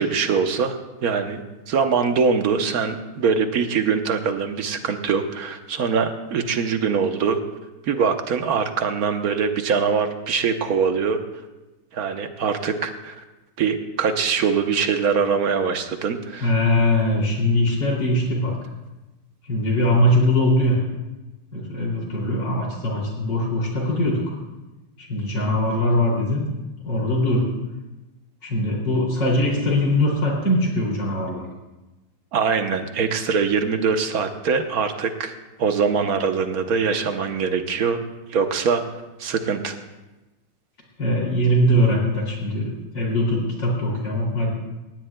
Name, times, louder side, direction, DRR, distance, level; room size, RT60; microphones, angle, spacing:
voice 1, 0.0-1.4 1.7-7.4 7.9-11.2 11.9-13.1 13.6-16.5 32.3-38.0 38.3-38.8 39.2-39.8, right 5 dB, 55° right, 7 dB, 1.0 m, -23 dB
voice 2, 16.4-18.6 19.4-20.8 21.5-24.2 25.0-26.4 26.8-27.5 28.4-31.5 41.0-44.5, left 1 dB, 55° left, -3 dB, 3.4 m, -21 dB
19.0 x 17.0 x 2.2 m, 1.1 s
omnidirectional pair, 2.4 m